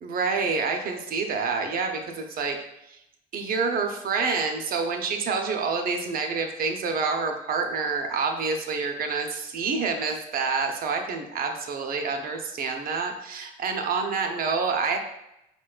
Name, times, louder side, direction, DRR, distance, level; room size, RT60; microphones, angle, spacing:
voice 1, 0.0-2.6 2.9-3.0 3.3-15.0, right 4 dB, 50° right, 4 dB, 0.6 m, -27 dB
4.2 x 2.2 x 2.3 m, 0.84 s
supercardioid pair, 85°, 19 cm